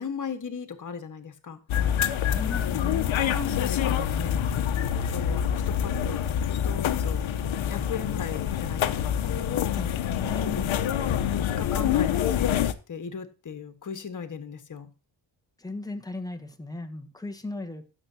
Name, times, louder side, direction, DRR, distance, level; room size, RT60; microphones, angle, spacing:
voice 1, 0.0-1.6 2.5-2.8 3.1-4.4 5.1-6.3 6.6-7.3 7.7-9.8 10.3-10.7 11.3-14.9, left 6 dB, 40° left, 1.6 m, -37 dB
sound 1, 1.7-12.7, left 9 dB, 85° left, 1.0 m, -26 dB
voice 2, 2.3-3.1 9.8-10.5 15.6-17.8, left 2 dB, 10° left, 1.2 m, -37 dB
16.0 x 7.3 x 2.8 m
wide cardioid pair, 140°, 46 cm